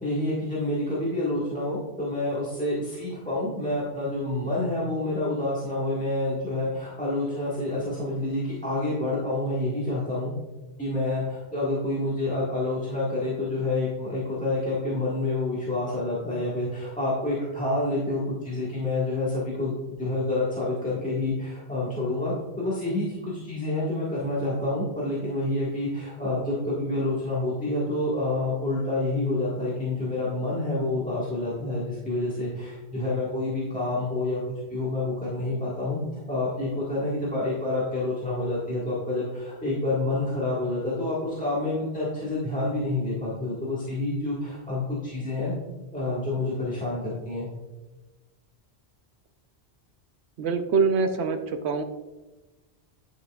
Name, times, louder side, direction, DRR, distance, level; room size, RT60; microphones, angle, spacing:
voice 1, 0.0-10.3 10.8-34.4 34.7-36.0 36.3-45.6 45.9-47.5, left 2 dB, 5° left, -9 dB, 1.6 m, -28 dB
voice 2, 50.4-51.8, right 5 dB, 80° right, 8 dB, 1.0 m, -24 dB
10.5 x 5.8 x 2.4 m, 1.1 s
omnidirectional pair, 1.1 m